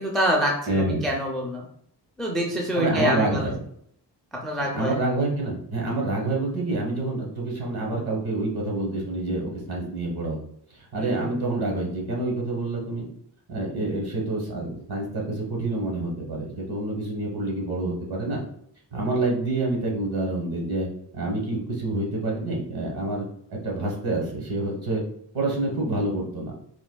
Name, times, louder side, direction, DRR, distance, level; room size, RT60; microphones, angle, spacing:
voice 1, 0.0-1.7 2.2-3.5 4.4-5.0 11.0-11.3, equal, ahead, 0 dB, 0.4 m, -26 dB
voice 2, 0.7-1.0 2.7-3.6 4.7-10.4 10.7-13.1 13.5-18.4 18.9-20.9 21.1-25.0 25.3-26.5, right 2 dB, 60° right, -1 dB, 1.1 m, -27 dB
4.2 x 2.6 x 2.2 m, 0.66 s
wide cardioid pair, 155°, 42 cm